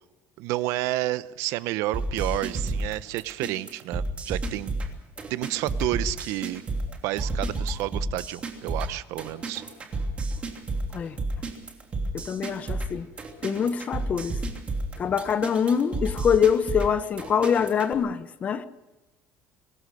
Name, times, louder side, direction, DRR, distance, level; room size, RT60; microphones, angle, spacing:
voice 1, 0.4-4.7 5.3-6.6 7.0-9.6, right 16 dB, 70° right, 0.9 m, -30 dB
sound 1, 1.9-17.9, right 2 dB, 20° right, 3.0 m, -31 dB
voice 2, 12.1-13.1 13.4-14.4 15.0-18.7, left 7 dB, 25° left, 1.0 m, -24 dB
24.5 x 20.0 x 6.3 m
cardioid pair, 180°, 5 cm